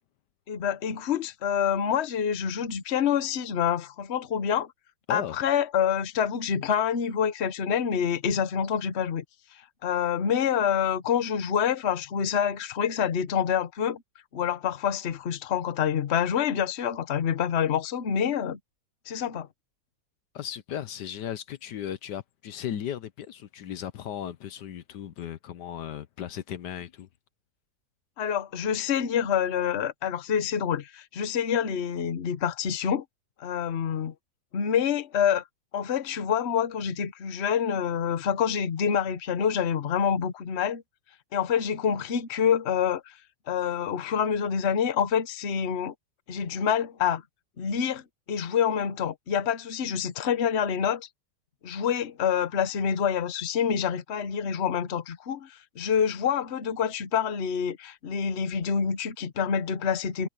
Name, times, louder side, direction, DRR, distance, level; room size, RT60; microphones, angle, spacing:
voice 1, 0.5-4.7 5.1-9.2 9.8-14.0 14.3-18.6 19.1-19.5 28.2-33.0 33.4-34.1 34.5-35.4 35.7-40.8 41.3-43.1 43.5-45.9 46.3-47.2 47.6-51.1 51.6-60.3, left 8 dB, 45° left, 1.2 m, -27 dB
voice 2, 20.3-27.1, left 10 dB, 75° left, 1.4 m, -36 dB
omnidirectional pair, 1.9 m